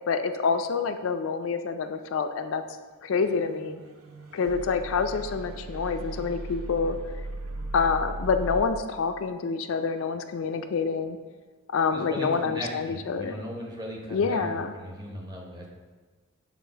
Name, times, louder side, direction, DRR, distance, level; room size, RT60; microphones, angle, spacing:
voice 1, 0.1-2.6 3.0-3.8 4.3-7.0 7.7-11.2 11.7-13.4 14.1-14.7, left 5 dB, 70° left, 8 dB, 0.4 m, -27 dB
sound 1, 3.4-8.6, right 2 dB, 85° right, 0.7 m, -37 dB
voice 2, 11.9-15.7, equal, 20° right, -1 dB, 0.8 m, -37 dB
7.2 x 2.5 x 5.5 m, 1.4 s
head